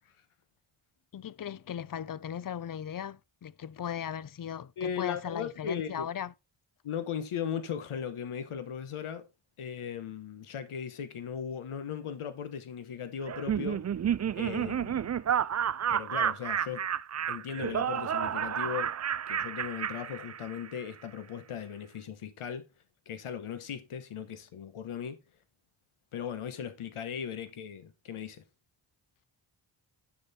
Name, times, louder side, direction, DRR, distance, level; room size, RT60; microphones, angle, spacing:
voice 1, 1.1-6.3, left 9 dB, 45° left, 0.6 m, -37 dB
voice 2, 4.8-6.1 6.8-9.3 9.6-13.8 14.3-15.1 15.9-16.8 17.3-18.9 19.3-22.6 23.1-25.2 26.1-28.4, left 8 dB, 90° left, 1.2 m, -37 dB
Laughter, 13.3-20.8, right 9 dB, 35° right, 0.4 m, -31 dB
9.8 x 6.7 x 4.2 m
cardioid pair, 70°, 49 cm